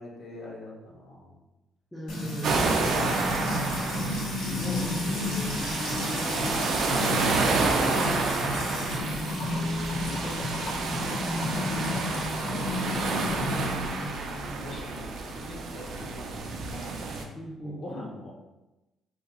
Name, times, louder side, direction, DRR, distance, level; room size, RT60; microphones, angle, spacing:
voice 1, 0.0-1.4 2.5-4.2 4.4-4.9 6.0-8.5 9.9-11.6 11.9-13.7 14.6-16.9 17.6-18.4, left 1 dB, 45° left, -2 dB, 0.7 m, -43 dB
voice 2, 1.9-2.6 4.8-5.8 11.4-11.6 13.9-14.7 17.3-18.0, right 1 dB, 10° left, -4 dB, 0.4 m, -39 dB
Music / Water tap faucet / Trickle dribble, 2.1-13.9, left 2 dB, 85° left, 0.8 m, -31 dB
sound 1, 2.4-17.2, right 4 dB, 65° right, 0.3 m, -30 dB
2.3 x 2.2 x 2.9 m, 1.0 s
cardioid pair, 125°, 0 cm